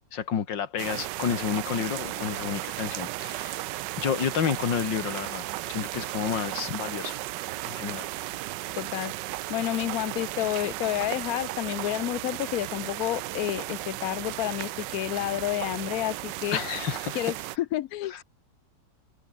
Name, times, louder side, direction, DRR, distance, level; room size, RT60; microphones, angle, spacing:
voice 1, 0.1-3.6 4.0-7.2 7.6-8.1 16.5-17.2, left 7 dB, 85° left, 2.3 m, -30 dB
sound 1, 0.8-17.6, right 16 dB, 80° right, 1.2 m, -35 dB
voice 2, 8.7-9.1 9.5-16.6 17.1-18.2, left 15 dB, 65° left, 0.9 m, -30 dB
omnidirectional pair, 1.9 m